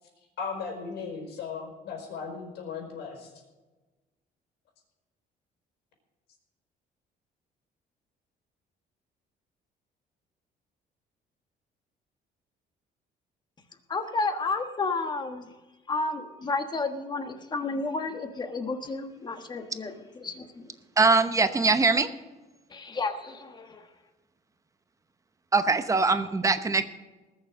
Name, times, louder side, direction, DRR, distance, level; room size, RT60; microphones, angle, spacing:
voice 1, 0.4-3.3, left 5 dB, 85° left, 2 dB, 5.1 m, -36 dB
voice 2, 13.9-15.5 15.9-20.7 22.7-23.9, left 3 dB, 25° left, 6 dB, 1.4 m, -31 dB
voice 3, 21.0-22.1 25.5-26.9, right 3 dB, 20° right, 10 dB, 0.9 m, -22 dB
20.0 x 6.9 x 6.4 m, 1.2 s
cardioid pair, 145°, 17 cm